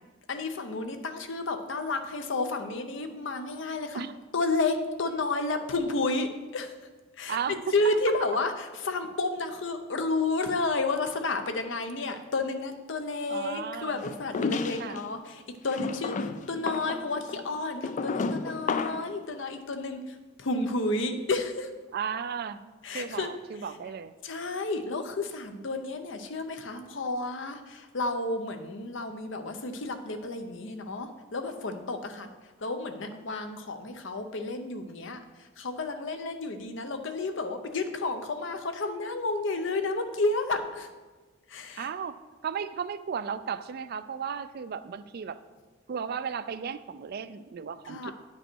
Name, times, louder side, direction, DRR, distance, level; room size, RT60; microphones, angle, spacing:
voice 1, 0.3-4.1 4.3-6.7 7.2-21.7 22.8-23.3 24.2-40.9 41.5-41.9 47.8-48.1, left 3 dB, 65° left, 7 dB, 0.7 m, -31 dB
voice 2, 7.3-7.9 13.3-14.0 14.8-15.0 21.9-24.2 41.8-42.2 42.4-45.4 45.9-48.1, right 7 dB, 50° right, 13 dB, 0.4 m, -35 dB
sound 1, 14.0-15.0 15.7-19.1, left 4 dB, 40° left, 0.3 m, -32 dB
9.8 x 5.3 x 4.5 m, 1.3 s
head